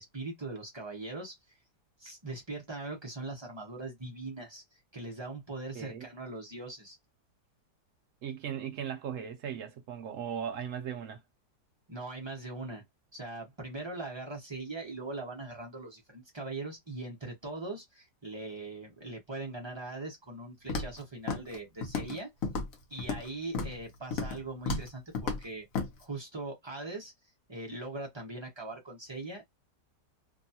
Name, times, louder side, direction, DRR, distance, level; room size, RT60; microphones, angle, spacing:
voice 1, 0.0-1.6 2.0-7.0 11.9-12.8 13.1-22.3 22.9-25.6 26.0-27.1 27.5-29.4, right 2 dB, 30° right, 0.5 m, -41 dB
voice 2, 8.2-11.2, right 8 dB, 70° right, 0.7 m, -37 dB
Walk footsteps, 20.7-21.0 21.3-21.6 21.8-22.2 22.4-23.3 23.5-23.8 24.1-24.4 24.7-24.9 25.1-25.4 25.7-25.9, left 4 dB, 60° left, 1.1 m, -33 dB
2.9 x 2.3 x 2.7 m
omnidirectional pair, 1.8 m